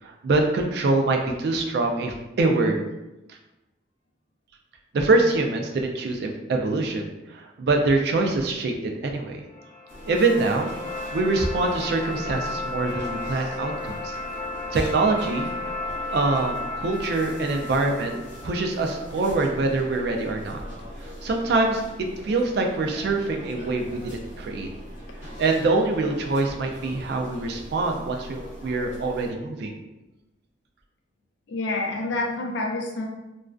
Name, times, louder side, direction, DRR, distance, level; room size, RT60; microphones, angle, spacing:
voice 1, 0.0-2.8 4.9-7.0 7.3-8.7 9.0-9.4 10.1-14.2 14.7-15.5 16.1-18.2 18.4-20.6 21.2-21.8 22.2-24.7 25.4-29.7, right 3 dB, 60° right, 3 dB, 0.3 m, -24 dB
sound 1, 9.5-19.5, left 2 dB, 15° left, 0.5 m, -34 dB
sound 2, 9.9-29.3, equal, 40° left, 0.8 m, -41 dB
voice 2, 31.5-33.1, left 2 dB, 75° left, 0 dB, 0.5 m, -28 dB
2.4 x 2.2 x 2.3 m, 0.99 s
head